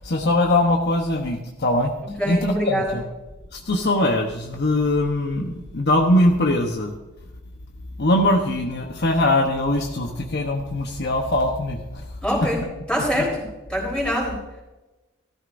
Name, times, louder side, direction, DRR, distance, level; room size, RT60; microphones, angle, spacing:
voice 1, 0.0-1.9 2.3-3.0 3.7-6.9 8.0-11.8, left 1 dB, 55° left, 2 dB, 1.0 m, -21 dB
voice 2, 2.0-3.0 12.2-14.4, equal, 5° left, -3 dB, 3.9 m, -25 dB
14.5 x 12.5 x 2.6 m, 1.1 s
head